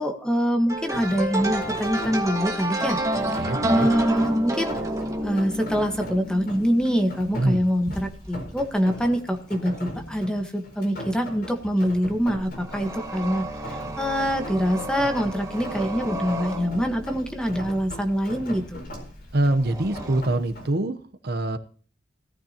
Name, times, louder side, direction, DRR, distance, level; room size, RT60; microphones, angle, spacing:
voice 1, 0.0-3.0 3.6-4.7 5.2-18.8, equal, 5° left, 4 dB, 1.4 m, -25 dB
sound 1, 0.7-8.4 8.8-9.1 9.8-9.9 11.9-20.2, right 1 dB, 20° right, 1.8 m, -31 dB
Rain, 0.9-20.7, equal, 50° left, 4.5 m, -40 dB
voice 2, 3.3-3.9 7.3-7.6 19.3-21.6, right 1 dB, 55° right, 9 dB, 0.9 m, -24 dB
17.5 x 13.0 x 2.9 m, 0.43 s
head